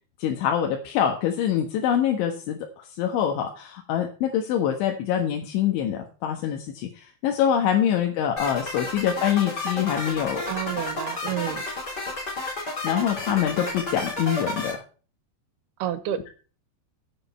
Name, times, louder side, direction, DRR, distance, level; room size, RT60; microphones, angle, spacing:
voice 1, 0.2-10.5 12.8-14.8, left 9 dB, 90° left, 3 dB, 3.9 m, -25 dB
sound 1, 8.4-14.7, left 2 dB, 20° left, 5.6 m, -31 dB
voice 2, 10.5-11.7 15.8-16.3, right 11 dB, 70° right, 13 dB, 2.7 m, -30 dB
15.5 x 7.9 x 4.4 m, 0.37 s
omnidirectional pair, 5.2 m